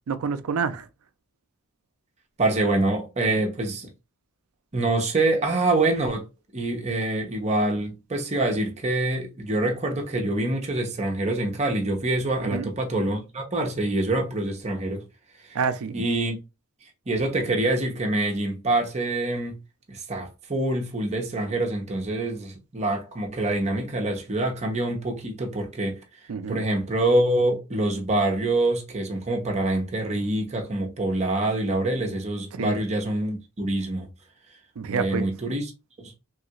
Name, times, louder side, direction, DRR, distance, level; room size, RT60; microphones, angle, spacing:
voice 1, 0.1-0.9 12.4-12.7 15.5-16.0 26.3-26.6 32.5-32.8 34.8-35.3, right 5 dB, 70° right, 0.4 m, -28 dB
voice 2, 2.4-3.9 4.7-6.3 6.5-15.0 15.4-15.6 15.9-16.4 17.1-19.6 19.9-26.0 26.5-34.1 34.9-35.7 36.0-36.1, right 2 dB, 30° right, 0.8 m, -25 dB
3.1 x 2.4 x 2.8 m
head